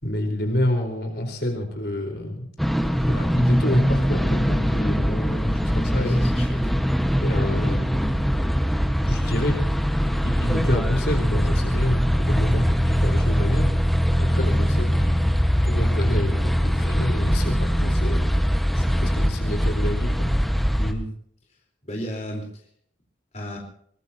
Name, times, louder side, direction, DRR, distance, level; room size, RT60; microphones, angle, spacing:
voice 1, 0.0-2.5 3.0-6.2 7.2-8.2 9.1-9.6 10.2-13.7 14.2-20.3, left 1 dB, 60° left, 3 dB, 4.4 m, -28 dB
sound 1, 2.6-20.9, equal, ahead, 1.4 m, -22 dB
voice 2, 6.0-6.8 20.8-21.1 21.8-22.6 23.3-23.6, equal, 35° left, 0 dB, 4.1 m, -33 dB
23.0 x 20.0 x 2.9 m, 0.63 s
head